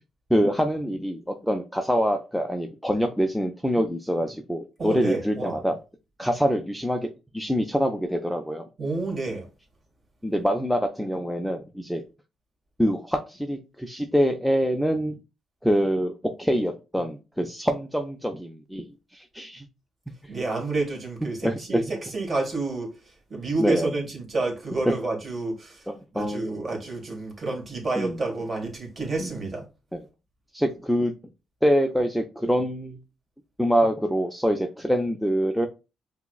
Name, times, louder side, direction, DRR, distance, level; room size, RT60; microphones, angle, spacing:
voice 1, 0.3-5.8 6.2-7.0 7.3-8.7 10.2-12.0 12.8-15.1 15.6-18.9 19.1-19.7 21.4-21.8 23.6-23.9 24.9-25.0 25.9-26.5 28.0-28.2 29.2-29.3 29.9-30.0 30.5-31.1 31.6-33.0 33.6-35.7, equal, ahead, 0.4 m, -25 dB
voice 2, 4.8-5.6 8.8-9.5 20.3-22.9 23.3-25.9 26.1-29.7, right 3 dB, 35° right, 1.8 m, -29 dB
5.6 x 2.1 x 2.3 m
cardioid pair, 90°, 0 cm